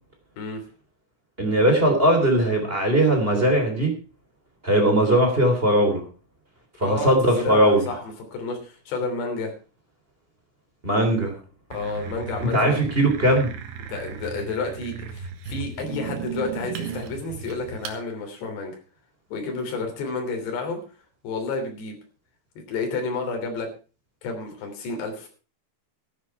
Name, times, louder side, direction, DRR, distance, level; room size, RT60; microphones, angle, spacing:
voice 1, 1.4-3.9 4.6-6.0 6.8-7.8 10.8-11.4 12.4-13.5, right 1 dB, 15° right, 3 dB, 3.1 m, -19 dB
voice 2, 6.8-8.0 8.3-9.5 11.7-12.8 13.9-18.8 19.3-20.8 21.2-22.0 22.7-23.7 24.2-25.3, left 3 dB, 75° left, 3 dB, 5.3 m, -30 dB
sound 1, 11.7-18.0, right 7 dB, 80° right, 3.6 m, -36 dB
14.0 x 11.5 x 4.6 m, 0.35 s
omnidirectional pair, 5.0 m